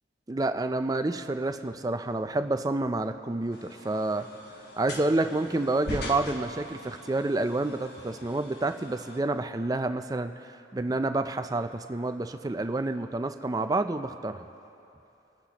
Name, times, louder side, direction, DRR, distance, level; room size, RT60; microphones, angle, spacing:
voice 1, 0.3-4.3 4.8-14.4, right 2 dB, 20° right, 8 dB, 0.4 m, -29 dB
sound 1, 3.5-9.2, left 1 dB, 55° left, 1.2 m, -42 dB
28.5 x 10.0 x 2.9 m, 2.8 s
head